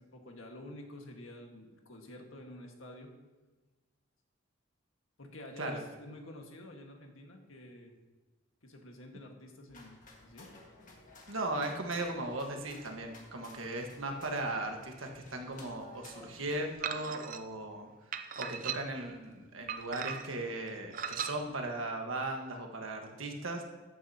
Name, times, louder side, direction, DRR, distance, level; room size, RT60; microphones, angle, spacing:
voice 1, 0.0-3.1 5.2-7.9 8.6-10.5, left 1 dB, 80° left, 2 dB, 1.7 m, -49 dB
sound 1, 9.7-16.7, left 2 dB, 40° left, 1.8 m, -55 dB
voice 2, 11.3-17.9 18.4-23.6, right 2 dB, 80° right, 3 dB, 1.5 m, -37 dB
sound 2, 16.8-17.4 18.1-19.1 19.7-20.4 20.9-21.3, right 7 dB, 40° right, 0.5 m, -37 dB
14.0 x 9.6 x 2.9 m, 1.3 s
head